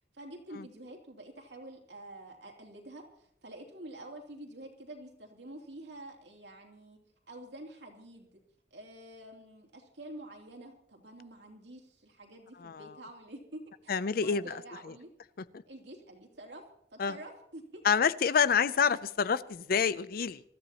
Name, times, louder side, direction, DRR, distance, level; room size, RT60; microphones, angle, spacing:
voice 1, 0.1-7.0 7.3-8.4 8.7-15.1 15.7-16.6 16.9-17.8, right 1 dB, 75° right, 1 dB, 2.9 m, -48 dB
voice 2, 12.6-12.9 13.9-14.5 17.0-17.1 17.8-20.4, left 6 dB, 55° left, 17 dB, 0.5 m, -27 dB
26.0 x 13.5 x 2.9 m, 0.71 s
head